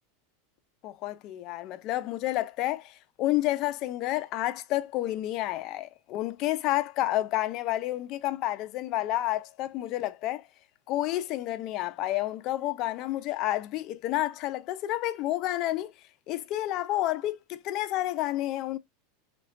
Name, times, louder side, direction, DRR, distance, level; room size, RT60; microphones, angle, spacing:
voice 1, 0.8-10.5 10.9-15.9 16.3-18.8, left 15 dB, 45° left, 0.3 m, -30 dB
2.3 x 2.2 x 2.5 m
supercardioid pair, 125°, 0 cm